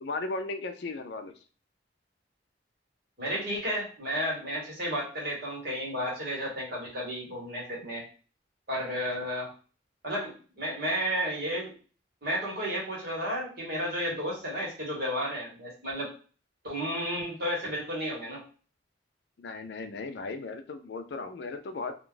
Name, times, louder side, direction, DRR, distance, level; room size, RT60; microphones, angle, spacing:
voice 1, 0.0-1.3 19.4-22.0, left 3 dB, 65° left, 8 dB, 0.4 m, -36 dB
voice 2, 3.2-8.0 8.7-9.5 10.0-11.7 12.2-16.1 16.6-18.4, equal, 55° right, -4 dB, 1.4 m, -32 dB
2.5 x 2.3 x 3.7 m, 0.38 s
head